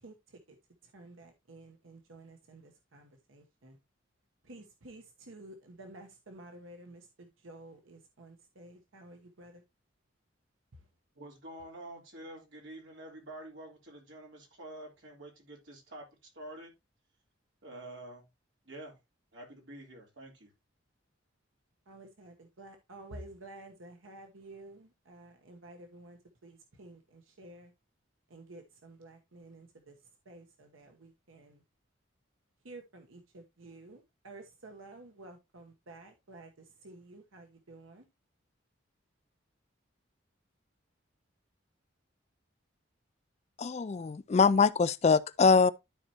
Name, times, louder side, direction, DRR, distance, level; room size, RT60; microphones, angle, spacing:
voice 1, 0.9-2.6 2.9-3.0 3.3-3.7 4.5-7.0 7.4-9.5 21.9-26.2 26.4-27.0 27.4-27.7 28.3-29.9 30.3-31.5 32.6-34.0 34.2-36.5 36.8-38.0, right 2 dB, 85° right, 1.0 m, -51 dB
voice 2, 11.2-16.1 16.3-16.7 17.6-18.3 18.7-19.0 19.3-20.5, right 1 dB, 70° right, 3.4 m, -47 dB
voice 3, 43.6-45.7, left 5 dB, 35° left, 0.3 m, -23 dB
12.5 x 4.4 x 2.9 m
head